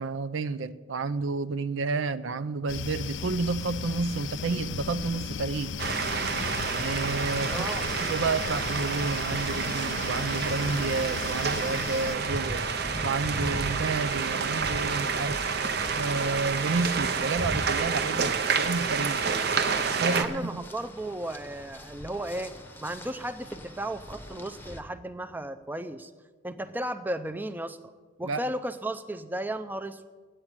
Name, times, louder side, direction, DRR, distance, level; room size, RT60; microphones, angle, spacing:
voice 1, 0.0-5.7 6.8-7.7 8.0-12.6 13.0-15.4 15.9-19.2 19.9-20.7 28.2-28.4, right 4 dB, 85° right, 14 dB, 0.5 m, -30 dB
sound 1, 2.7-12.2, left 6 dB, 70° left, 0.5 m, -36 dB
sound 2, 5.8-20.2, right 5 dB, 55° right, 0.8 m, -29 dB
voice 2, 7.5-7.9 20.1-22.5 22.8-26.1 26.4-27.8 28.2-30.1, right 1 dB, 10° right, 9 dB, 0.4 m, -34 dB
sound 3, 12.3-24.8, left 1 dB, 10° left, 0.8 m, -41 dB
8.9 x 8.8 x 9.7 m, 1.4 s
head